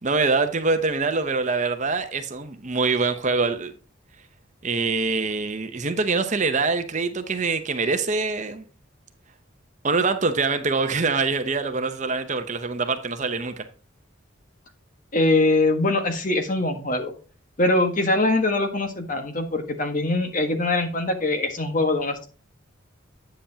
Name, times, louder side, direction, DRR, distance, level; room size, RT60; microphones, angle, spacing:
voice 1, 0.0-3.7 4.6-8.6 9.8-13.6, right 4 dB, 35° right, 0.8 m, -24 dB
voice 2, 15.1-17.1 17.6-22.3, left 2 dB, 40° left, 1.3 m, -22 dB
8.8 x 7.6 x 2.8 m
head